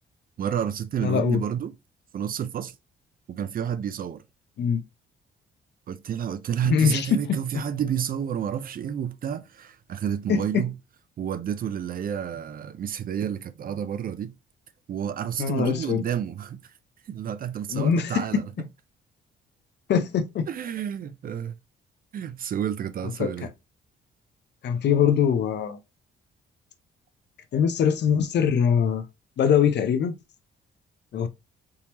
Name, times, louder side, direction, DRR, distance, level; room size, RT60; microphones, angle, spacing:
voice 1, 0.4-1.7 2.1-2.7 3.3-4.2 5.9-10.7 11.2-14.3 14.9-16.6 17.1-18.4 20.5-21.5 22.1-23.5, right 9 dB, 45° right, 0.4 m, -30 dB
voice 2, 1.0-1.4 4.6-4.8 6.6-7.6 10.3-10.6 15.4-16.0 17.7-18.4 19.9-20.5 23.0-23.3 24.6-25.8 27.5-29.0 29.4-30.2 31.1-31.3, left 7 dB, 60° left, 0.6 m, -23 dB
3.6 x 2.9 x 2.9 m
cardioid pair, 90°, 20 cm